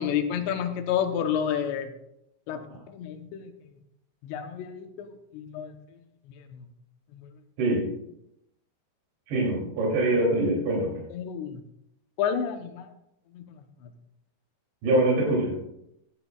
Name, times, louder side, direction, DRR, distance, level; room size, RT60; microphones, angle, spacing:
voice 1, 0.0-1.9 2.5-2.6 2.9-3.7 4.2-5.8 6.3-6.7 7.1-7.3 11.1-11.6 12.2-12.9 13.3-13.4 13.8-13.9, left 8 dB, 85° left, 7 dB, 3.1 m, -30 dB
voice 2, 9.3-11.0 14.8-15.5, right 2 dB, 85° right, -3 dB, 5.2 m, -24 dB
14.0 x 12.5 x 2.4 m, 0.80 s
omnidirectional pair, 4.8 m